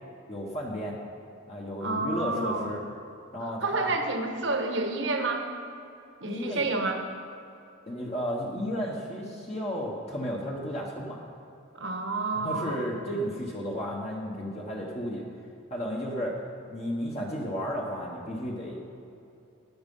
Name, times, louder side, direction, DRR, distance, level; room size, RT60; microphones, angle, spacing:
voice 1, 0.3-1.0 1.5-2.8 3.3-3.9 6.2-6.7 7.9-11.2 12.4-15.2 15.7-16.4 16.7-18.8, equal, 30° left, -2 dB, 1.2 m, -33 dB
voice 2, 1.8-2.7 3.4-5.5 6.2-7.0 11.7-12.8, right 2 dB, 60° right, 4 dB, 1.3 m, -29 dB
13.5 x 9.6 x 5.5 m, 2.7 s
head